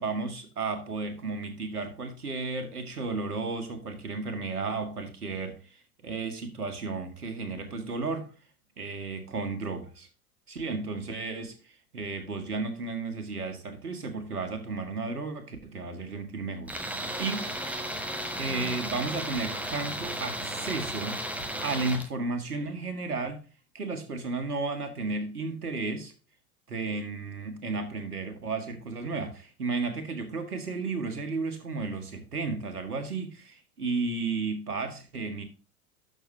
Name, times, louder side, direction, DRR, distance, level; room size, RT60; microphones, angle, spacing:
voice 1, 0.0-8.3 8.8-10.1 10.5-17.5 18.4-21.2 21.6-23.5 23.7-26.1 26.7-35.4, right 3 dB, 85° right, 2.0 m, -33 dB
Tools, 16.7-22.1, right 1 dB, 5° right, 1.4 m, -34 dB
12.0 x 6.7 x 2.8 m
figure-of-eight pair, 85°, 45 cm